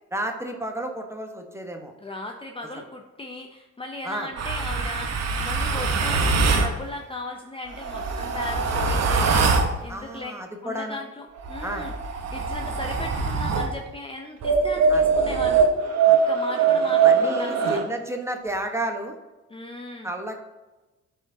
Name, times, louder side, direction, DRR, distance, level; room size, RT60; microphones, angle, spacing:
voice 1, 0.1-1.9 2.7-2.8 4.0-4.3 9.9-11.0 11.6-11.9 14.9-15.0 16.1-16.2 17.0-19.2 20.0-20.4, right 1 dB, 10° right, 3 dB, 1.1 m, -31 dB
voice 2, 2.0-10.4 10.6-11.9 12.3-15.7 16.1-17.8 19.5-20.1, left 2 dB, 20° left, 3 dB, 0.6 m, -37 dB
sound 1, 4.4-6.7 7.7-9.7 11.4-13.7 14.4-17.8, right 5 dB, 60° right, 1.0 m, -22 dB
12.0 x 4.6 x 2.7 m, 1.1 s
cardioid pair, 90°, 30 cm